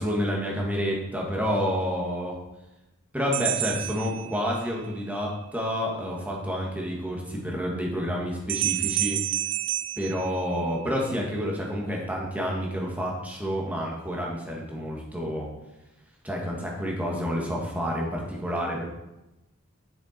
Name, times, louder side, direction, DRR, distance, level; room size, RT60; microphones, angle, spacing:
voice 1, 0.0-2.3 3.1-9.2 10.0-15.5 16.2-18.9, equal, 5° right, -2 dB, 1.8 m, -29 dB
sound 1, 3.3-4.9 8.5-11.0, right 15 dB, 60° right, 0.4 m, -30 dB
9.7 x 6.7 x 4.5 m, 0.97 s
head